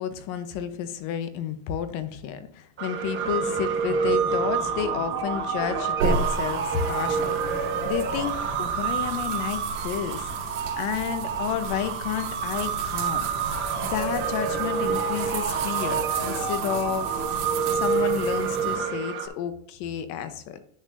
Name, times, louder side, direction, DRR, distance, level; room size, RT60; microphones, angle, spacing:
voice 1, 0.0-13.3 13.8-17.2 17.7-20.6, left 9 dB, 50° left, 11 dB, 0.9 m, -31 dB
sound 1, 2.8-19.3, right 6 dB, 30° right, 1.2 m, -28 dB
sound 2, 6.0-18.8, right 4 dB, 65° right, 2.2 m, -35 dB
10.5 x 6.4 x 2.7 m, 0.63 s
supercardioid pair, 145°, 39 cm